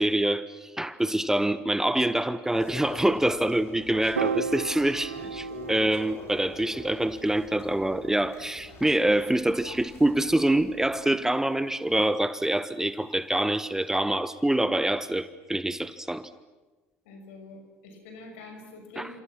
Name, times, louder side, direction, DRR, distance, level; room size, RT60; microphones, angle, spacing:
voice 1, 0.0-16.3 19.0-19.1, right 1 dB, 5° right, 13 dB, 1.2 m, -25 dB
sound 1, 2.5-11.1, left 3 dB, 40° left, 5.9 m, -46 dB
Piano, 4.2-10.5, right 5 dB, 85° right, 0.8 m, -37 dB
voice 2, 17.0-19.2, left 2 dB, 70° left, 5 dB, 6.3 m, -45 dB
29.5 x 28.5 x 6.2 m, 1.2 s
figure-of-eight pair, 60°, 7 cm